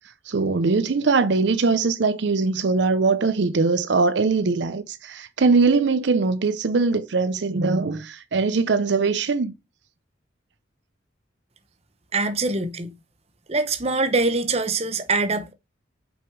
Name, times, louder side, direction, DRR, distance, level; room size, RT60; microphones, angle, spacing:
voice 1, 0.3-9.5, right 4 dB, 65° right, 0.5 m, -21 dB
voice 2, 12.1-12.9 13.5-15.5, right 3 dB, 30° right, 0.9 m, -23 dB
6.1 x 5.2 x 4.6 m
head